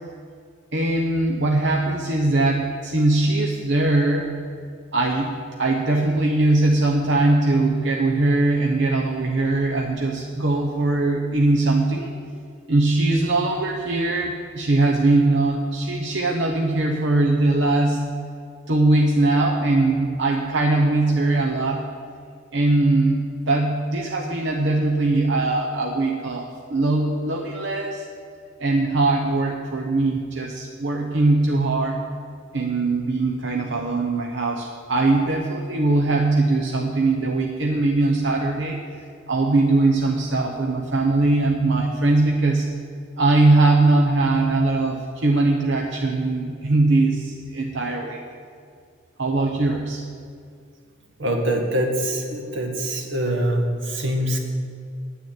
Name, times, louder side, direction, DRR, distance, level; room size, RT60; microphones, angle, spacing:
voice 1, 0.7-4.3 4.9-12.1 12.7-18.1 18.7-21.8 22.5-28.0 28.6-32.0 32.5-38.8 39.3-42.7 43.2-48.2 49.2-50.0, right 2 dB, 65° right, 1 dB, 0.9 m, -21 dB
voice 2, 51.2-54.4, right 1 dB, 85° right, 2 dB, 1.8 m, -24 dB
9.4 x 8.4 x 9.1 m, 2.3 s
head